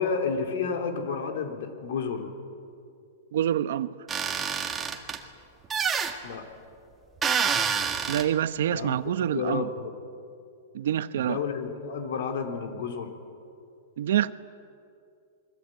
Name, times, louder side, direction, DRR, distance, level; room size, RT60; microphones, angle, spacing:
voice 1, 0.0-2.3 6.2-6.5 8.7-9.0 9.3-9.9 11.2-13.1, left 5 dB, 65° left, 3.7 m, -31 dB
voice 2, 3.3-3.9 8.1-9.7 10.7-11.4 14.0-14.3, right 10 dB, 70° right, 1.0 m, -26 dB
sound 1, 4.1-5.2 5.7-6.1 7.2-8.2, right 6 dB, 15° right, 1.8 m, -27 dB
28.0 x 22.5 x 9.1 m
supercardioid pair, 160°, 0 cm